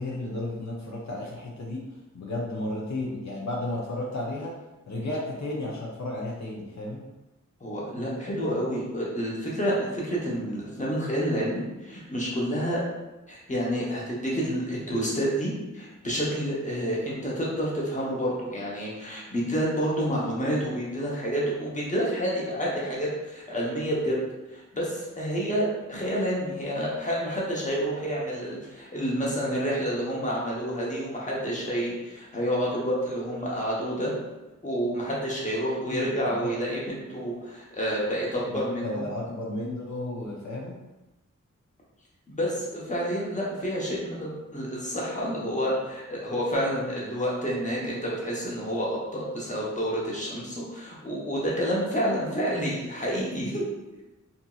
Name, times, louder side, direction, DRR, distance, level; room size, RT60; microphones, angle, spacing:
voice 1, 0.0-1.8 2.1-4.5 4.9-7.0 35.9-36.5 38.5-40.8, left 1 dB, 65° left, -4 dB, 0.5 m, -33 dB
voice 2, 7.6-12.8 13.3-24.2 24.5-34.1 34.6-39.0 42.3-53.6, equal, 25° left, -5 dB, 0.8 m, -29 dB
2.8 x 2.7 x 2.3 m, 1.0 s
wide cardioid pair, 70°, 30 cm